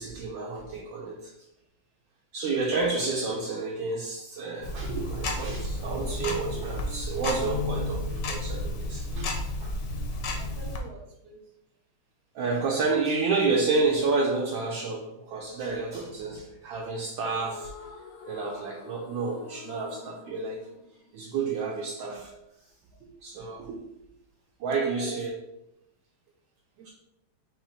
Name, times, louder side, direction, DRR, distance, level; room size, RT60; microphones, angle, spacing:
voice 1, 0.0-1.3 2.3-9.7 12.3-17.9 18.3-20.6 21.1-22.3 23.1-23.9 24.6-25.3 26.8-26.9, right 4 dB, 75° right, -1 dB, 1.2 m, -30 dB
Tick-tock, 4.6-10.8, left 2 dB, 65° left, 1.1 m, -32 dB
voice 2, 10.4-11.4 24.7-25.2 26.8-26.9, right 5 dB, 60° right, 2 dB, 1.2 m, -43 dB
sound 1, 17.2-21.6, left 6 dB, 85° left, 1.6 m, -47 dB
4.1 x 2.9 x 4.0 m, 0.88 s
omnidirectional pair, 2.4 m